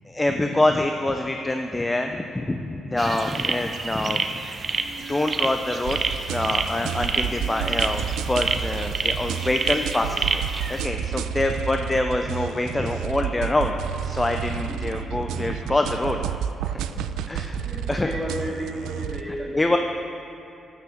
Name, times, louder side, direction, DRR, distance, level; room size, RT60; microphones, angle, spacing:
voice 1, 0.1-4.2 5.1-6.0 6.3-10.4 10.7-13.8 14.0-16.3 17.3-17.5 17.9-18.1 19.5-19.8, left 2 dB, 15° left, 5 dB, 0.5 m, -25 dB
sound 1, 3.0-10.8, right 4 dB, 40° right, 0.7 m, -28 dB
sound 2, 5.8-19.2, right 9 dB, 85° right, 0.3 m, -30 dB
voice 2, 14.7-15.3 16.9-19.8, equal, ahead, -3 dB, 2.4 m, -34 dB
13.0 x 6.1 x 5.9 m, 3.0 s
cardioid pair, 80°, 0 cm